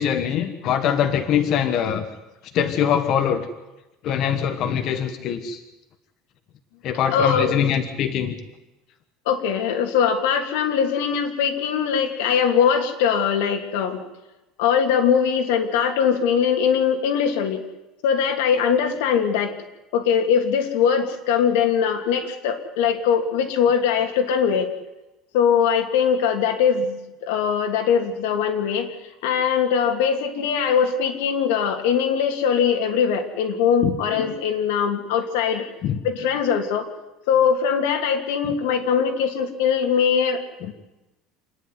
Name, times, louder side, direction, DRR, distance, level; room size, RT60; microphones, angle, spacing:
voice 1, 0.0-2.1 2.5-3.5 4.0-5.6 6.8-8.4 33.8-34.0 35.8-36.0 40.6-40.7, left 8 dB, 40° left, 7 dB, 1.3 m, -23 dB
voice 2, 7.1-7.7 9.3-14.0 14.6-17.6 18.0-19.5 19.9-24.7 25.3-28.9 29.2-35.7 36.0-36.9 37.3-40.7, left 7 dB, 90° left, 5 dB, 2.8 m, -21 dB
27.5 x 10.5 x 9.5 m, 1.0 s
cardioid pair, 180°, 0 cm